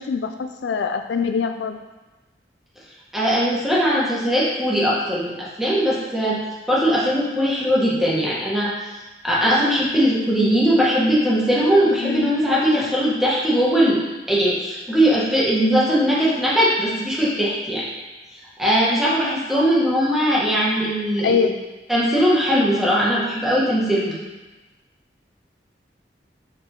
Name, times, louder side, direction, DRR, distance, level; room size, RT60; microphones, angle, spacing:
voice 1, 0.0-1.8 12.0-12.4 21.2-21.5, left 6 dB, 75° left, 6 dB, 0.4 m, -23 dB
voice 2, 3.1-6.4 6.7-8.7 9.2-14.0 14.3-17.9 18.6-21.5 21.9-24.2, equal, ahead, -7 dB, 1.3 m, -20 dB
6.9 x 4.7 x 3.0 m, 1.2 s
head